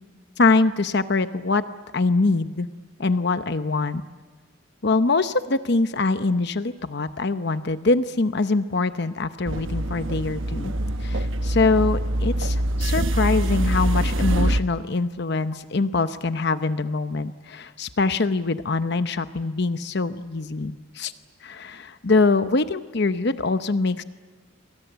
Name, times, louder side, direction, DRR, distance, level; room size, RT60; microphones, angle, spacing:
voice 1, 0.4-1.6 1.9-2.7 3.0-4.0 4.8-10.7 11.0-21.1 21.4-24.0, left 3 dB, 55° left, 11 dB, 0.8 m, -23 dB
sound 1, 9.5-14.6, right 1 dB, 70° right, 1.0 m, -24 dB
28.5 x 24.0 x 8.0 m, 1.4 s
head